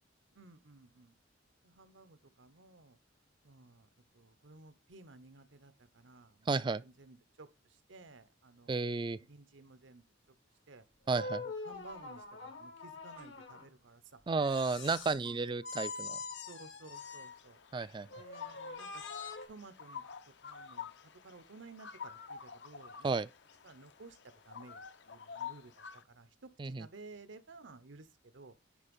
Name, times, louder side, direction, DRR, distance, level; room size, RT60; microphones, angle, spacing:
voice 1, 0.3-1.1 1.6-3.0 3.4-10.0 10.7-10.9 11.6-14.3 15.1-15.4 16.4-17.6 18.1-19.0 19.5-20.0 20.4-20.9 21.2-23.1 23.6-28.5, right 3 dB, 75° right, 0.9 m, -55 dB
voice 2, 6.5-6.8 8.7-9.2 11.1-11.4 14.3-16.2 17.7-18.1 23.0-23.3 26.6-26.9, right 4 dB, 25° right, 0.3 m, -32 dB
sound 1, 11.1-13.7 14.3-15.3 15.6-17.4 18.1-19.5, left 3 dB, 80° left, 1.6 m, -44 dB
sound 2, 16.9-26.0, left 7 dB, 65° left, 0.6 m, -49 dB
9.7 x 3.4 x 5.3 m
head